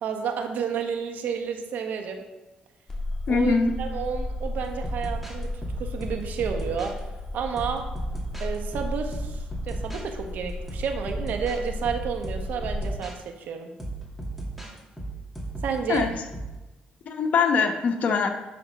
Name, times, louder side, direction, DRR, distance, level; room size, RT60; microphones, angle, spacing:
voice 1, 0.0-2.2 3.3-5.5 5.8-6.9 7.3-7.8 8.4-9.4 9.7-13.7 15.6-16.1, right 6 dB, 70° right, 5 dB, 1.2 m, -31 dB
sound 1, 2.9-12.9, left 2 dB, 15° left, 2.0 m, -34 dB
voice 2, 3.3-3.7 15.9-16.1 17.1-18.3, left 5 dB, 55° left, 4 dB, 1.0 m, -22 dB
sound 2, 4.5-7.0 7.6-10.1 10.5-13.2 13.8-16.6, right 2 dB, ahead, 2.4 m, -36 dB
11.5 x 3.9 x 5.1 m, 1.1 s
cardioid pair, 80°, 3 cm